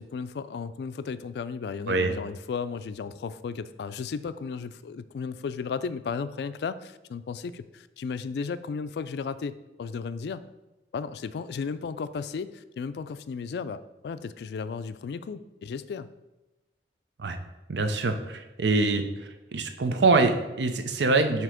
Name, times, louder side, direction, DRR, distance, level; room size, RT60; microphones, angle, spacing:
voice 1, 0.0-10.4 10.9-16.1, left 5 dB, 70° left, 14 dB, 0.3 m, -34 dB
voice 2, 17.7-19.0 19.5-21.4, right 3 dB, 85° right, 7 dB, 0.6 m, -24 dB
7.5 x 2.9 x 4.9 m, 1.0 s
head